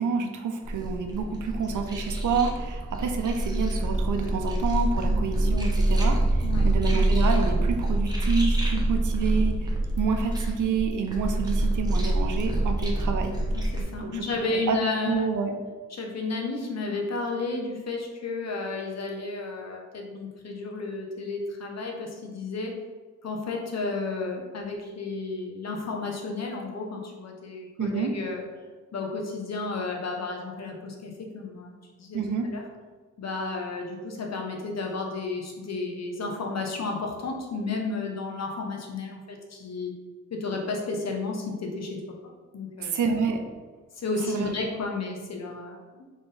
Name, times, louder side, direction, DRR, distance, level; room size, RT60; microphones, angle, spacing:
voice 1, 0.0-13.3 14.0-14.3 14.7-14.8 15.0-15.6 27.8-28.2 32.1-32.5 42.8-43.4 44.3-44.5, right 5 dB, 80° right, 4 dB, 0.6 m, -28 dB
sound 1, 0.6-13.8, right 1 dB, 15° right, 0.9 m, -26 dB
voice 2, 13.5-15.3 15.9-22.7 23.2-28.5 28.9-32.2 32.5-32.6 33.2-39.9 40.3-43.0 43.9-46.0, left 3 dB, 60° left, 1 dB, 0.9 m, -32 dB
4.3 x 3.5 x 3.3 m, 1.4 s
wide cardioid pair, 95°, 30 cm